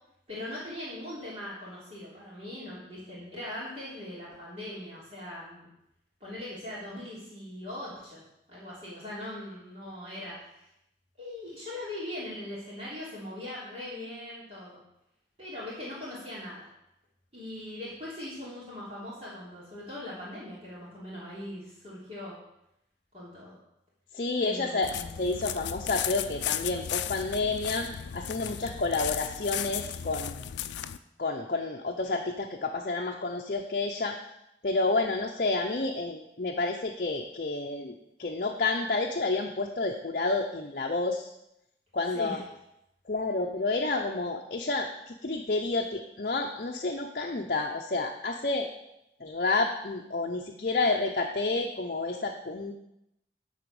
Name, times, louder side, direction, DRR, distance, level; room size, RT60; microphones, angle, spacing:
voice 1, 0.3-5.7 6.2-8.2 8.5-10.7 11.2-14.8 15.4-16.7 17.3-22.3 23.1-23.6 24.4-25.3 42.1-42.4, left 1 dB, 35° right, -8 dB, 3.1 m, -40 dB
voice 2, 24.1-24.9 25.2-27.9 28.1-30.5 31.2-34.2 34.6-41.3 41.9-42.4 43.1-48.7 49.2-52.7, left 3 dB, 50° left, 1 dB, 0.7 m, -30 dB
sound 1, 24.8-31.0, left 10 dB, 85° left, 0.4 m, -35 dB
11.0 x 4.2 x 7.0 m, 0.82 s
head